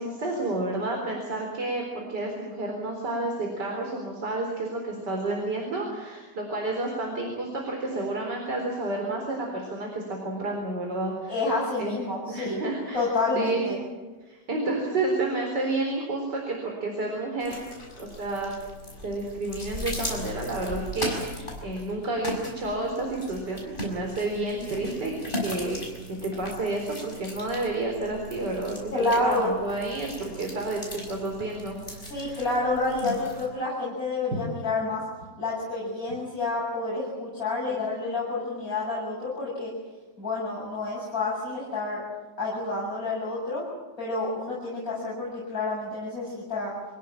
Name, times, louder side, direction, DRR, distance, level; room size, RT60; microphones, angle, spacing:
voice 1, 0.0-12.0 12.3-13.0 13.4-13.7 14.3-17.6 18.0-18.5 19.0-28.8 29.2-32.5 34.3-34.4 37.7-37.8, right 2 dB, 75° right, 1 dB, 4.8 m, -30 dB
voice 2, 11.3-12.6 12.9-13.8 28.9-29.5 32.1-35.0 35.4-39.7 40.2-42.0 42.4-43.7 44.0-46.7, left 2 dB, 55° left, -6 dB, 7.9 m, -29 dB
sound 1, 17.4-33.5, left 1 dB, 30° left, 6.3 m, -38 dB
27.0 x 16.5 x 8.9 m, 1.3 s
omnidirectional pair, 1.8 m